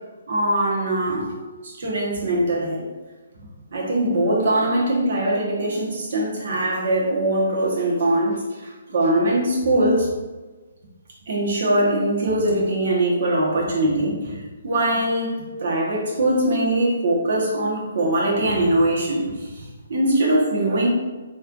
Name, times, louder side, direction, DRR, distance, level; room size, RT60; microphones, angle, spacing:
voice 1, 0.3-1.3 1.6-2.9 3.4-10.1 11.3-14.4 14.6-20.9, right 1 dB, 55° right, -4 dB, 1.2 m, -22 dB
4.4 x 3.1 x 2.5 m, 1.3 s
figure-of-eight pair, 140°, 0 cm